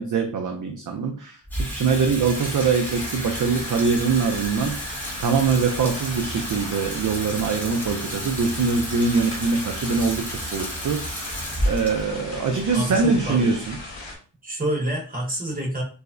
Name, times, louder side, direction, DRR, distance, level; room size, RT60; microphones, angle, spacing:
voice 1, 0.0-11.3 11.7-13.8, right 5 dB, 50° right, 4 dB, 0.4 m, -23 dB
Water tap faucet / Sink (filling or washing), 1.4-13.8, equal, 5° left, 0.9 m, -32 dB
sound 1, 2.3-14.2, left 2 dB, 90° left, 1.2 m, -37 dB
voice 2, 12.7-13.6 14.4-15.8, right 1 dB, 20° right, -2 dB, 1.1 m, -27 dB
4.7 x 2.0 x 2.5 m, 0.39 s
wide cardioid pair, 150°, 43 cm